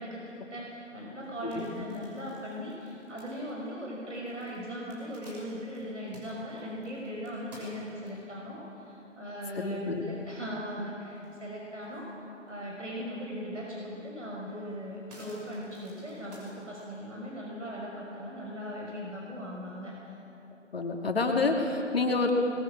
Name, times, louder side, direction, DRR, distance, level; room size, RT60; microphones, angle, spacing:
voice 1, 0.0-12.1 12.5-19.9, equal, 70° right, -3 dB, 5.7 m, -39 dB
sound 1, 1.2-8.4 9.0-9.1 9.5-9.6 9.9-10.8 11.2-12.1 12.5-12.6 13.9-14.0 14.4-17.0, equal, 35° right, 6.3 m, -54 dB
voice 2, 9.5-10.0 20.7-22.3, left 3 dB, 50° left, 1 dB, 2.8 m, -28 dB
21.5 x 19.0 x 7.6 m, 3.0 s
figure-of-eight pair, 160°, 37 cm